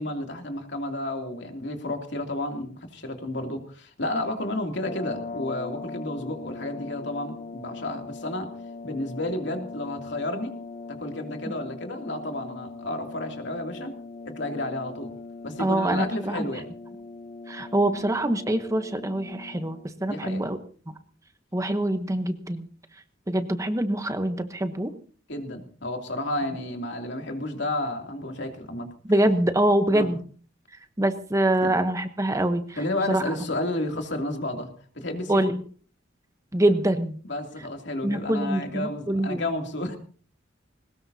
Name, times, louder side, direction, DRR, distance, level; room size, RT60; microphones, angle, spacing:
voice 1, 0.0-8.5 8.8-10.5 10.9-14.0 14.2-15.1 15.4-16.6 20.1-20.4 25.3-28.9 29.9-30.1 31.6-31.7 32.8-34.7 34.9-35.5 37.3-40.0, left 1 dB, 65° left, 4 dB, 2.7 m, -31 dB
sound 1, 4.8-19.9, left 3 dB, 40° left, 0.7 m, -40 dB
voice 2, 15.6-16.4 17.5-20.6 21.5-22.7 23.3-24.9 29.0-30.2 31.0-32.8 33.1-33.2 35.3-35.6 36.5-37.2 38.0-39.4, right 1 dB, 15° right, 9 dB, 0.9 m, -24 dB
21.0 x 19.0 x 2.8 m, 0.42 s
head